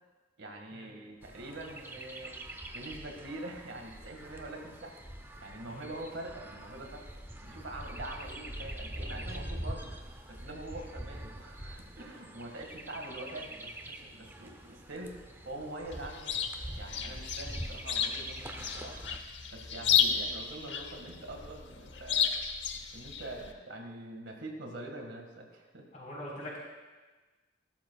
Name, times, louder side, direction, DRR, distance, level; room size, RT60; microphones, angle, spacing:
voice 1, 0.4-2.4 2.7-4.9 5.4-7.0 7.4-9.9 10.3-15.1 15.5-16.4 16.8-19.0 19.5-22.4 22.9-25.8, right 1 dB, 85° right, 2 dB, 1.9 m, -44 dB
Chirp tweet, 1.2-19.2, right 1 dB, 10° right, 0.6 m, -44 dB
Chirp tweet 2, 15.9-23.5, left 8 dB, 70° left, 0.8 m, -33 dB
voice 2, 25.9-26.6, left 1 dB, 40° left, -4 dB, 4.3 m, -43 dB
17.0 x 12.5 x 2.4 m, 1.3 s
head